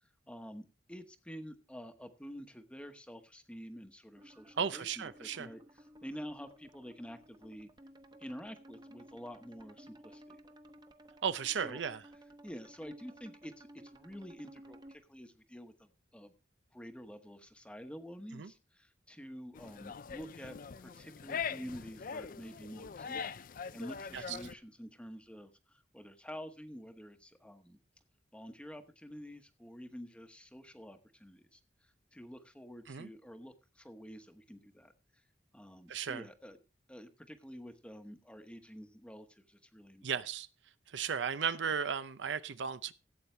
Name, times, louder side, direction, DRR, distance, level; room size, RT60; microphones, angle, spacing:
voice 1, 0.3-7.7 8.2-10.4 11.5-11.8 12.4-16.3 16.7-23.2 23.7-27.8 28.3-34.9 35.5-36.6 36.9-40.2, equal, 5° left, 1.0 m, -49 dB
sound 1, 4.2-15.0, right 1 dB, 25° right, 1.0 m, -56 dB
voice 2, 4.6-5.5 11.2-12.0 18.3-18.5 24.1-24.4 32.9-33.1 35.9-36.2 40.0-40.5 40.9-42.9, right 7 dB, 75° right, 0.6 m, -35 dB
sound 2, 19.5-24.5, left 6 dB, 50° left, 0.4 m, -42 dB
16.0 x 8.6 x 3.3 m
head